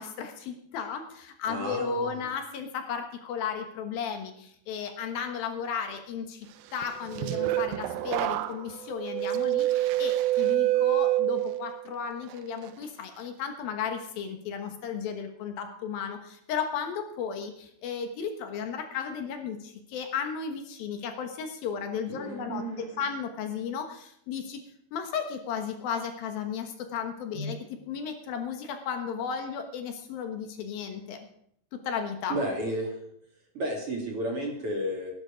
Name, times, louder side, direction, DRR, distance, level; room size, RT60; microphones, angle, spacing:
voice 1, 0.0-24.6 24.9-31.2 31.7-32.4, left 6 dB, 70° left, 6 dB, 2.9 m, -34 dB
voice 2, 1.5-2.2 22.1-23.0 27.3-27.5 32.3-32.9 33.5-35.1, right 1 dB, 40° right, 1 dB, 2.9 m, -32 dB
sound 1, 6.8-11.9 12.3-12.7, right 15 dB, 75° right, 2.3 m, -27 dB
18.0 x 11.0 x 5.1 m, 0.71 s
omnidirectional pair, 4.6 m